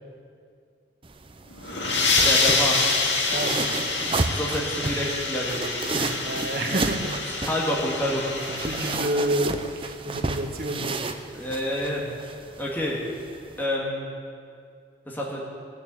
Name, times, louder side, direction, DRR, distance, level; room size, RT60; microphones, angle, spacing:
sound 1, 1.0-13.7, right 3 dB, 30° right, 0.7 m, -32 dB
sound 2, 1.5-9.0, left 3 dB, 70° left, 2.3 m, -26 dB
voice 1, 2.2-2.9 4.2-5.7 5.9-6.1 7.4-8.3 11.3-12.1 12.6-13.0 13.6-14.1 15.1-15.4, left 1 dB, 10° left, -4 dB, 2.1 m, -28 dB
voice 2, 3.3-4.0 6.2-7.2 8.4-11.1, right 1 dB, 50° right, 2 dB, 1.4 m, -29 dB
19.0 x 6.9 x 9.1 m, 2.3 s
head